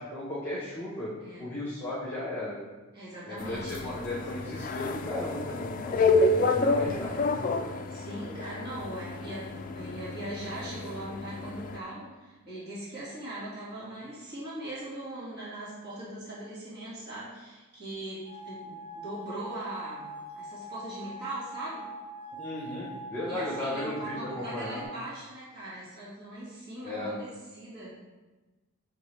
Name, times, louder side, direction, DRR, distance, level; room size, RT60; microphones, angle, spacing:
voice 1, 0.0-1.1 1.4-2.6 3.2-7.1 22.4-24.9 26.8-27.1, left 1 dB, 10° left, -9 dB, 1.2 m, -35 dB
voice 2, 2.9-3.8 7.9-21.9 23.3-27.3 27.5-27.9, right 1 dB, 50° right, -8 dB, 2.0 m, -40 dB
sound 1, 3.4-11.8, left 3 dB, 35° left, 0.3 m, -29 dB
sound 2, 18.2-24.8, equal, 25° right, 1.8 m, -43 dB
6.8 x 4.6 x 3.3 m, 1.2 s
head